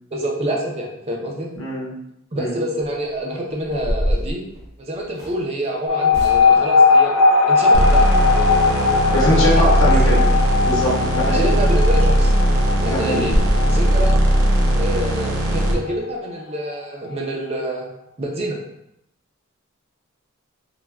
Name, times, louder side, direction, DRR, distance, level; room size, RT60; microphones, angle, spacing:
voice 1, 0.1-1.5 2.3-4.4 4.8-7.2 7.5-8.1 9.3-9.9 11.3-12.3 12.8-13.3 13.7-14.2 14.8-17.9 18.2-18.6, right 1 dB, 30° right, 0 dB, 0.4 m, -27 dB
voice 2, 1.6-1.9 2.4-2.5 9.1-10.2 10.7-11.5 12.9-13.3, equal, 60° left, -5 dB, 0.7 m, -21 dB
sound 1, 3.1-3.2 3.6-5.4 6.1-6.7 11.3-11.4 11.8-11.9 12.3-12.4 12.8-12.9 13.2-13.6, equal, 50° right, 0.9 m, -24 dB
sound 2, 5.9-16.8, left 4 dB, 85° left, 0.4 m, -19 dB
sound 3, 7.7-15.7, right 1 dB, 75° right, 0.5 m, -18 dB
3.2 x 2.1 x 2.3 m, 0.81 s
head